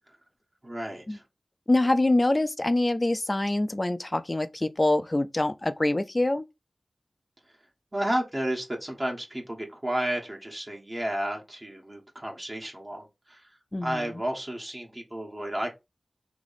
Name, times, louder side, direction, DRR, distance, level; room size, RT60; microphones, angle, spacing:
voice 1, 0.6-1.2 7.9-13.4 13.8-15.7, right 1 dB, 30° right, 1.3 m, -32 dB
voice 2, 1.7-6.4 13.7-14.2, left 2 dB, 30° left, 0.4 m, -25 dB
3.1 x 3.0 x 4.0 m
wide cardioid pair, 65°, 0 cm